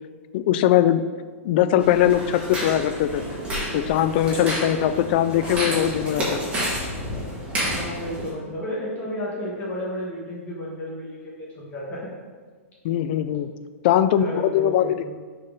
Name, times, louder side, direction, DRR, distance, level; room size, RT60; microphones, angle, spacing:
voice 1, 0.3-1.0 1.4-3.2 3.7-6.4 12.8-13.5 13.8-15.1, left 11 dB, 45° left, 12 dB, 0.4 m, -21 dB
sound 1, 1.8-8.3, equal, 15° right, 1.8 m, -29 dB
voice 2, 7.7-12.1 14.2-15.1, equal, 25° left, -5 dB, 1.4 m, -32 dB
6.2 x 4.2 x 3.8 m, 1.5 s
hypercardioid pair, 145°, 7 cm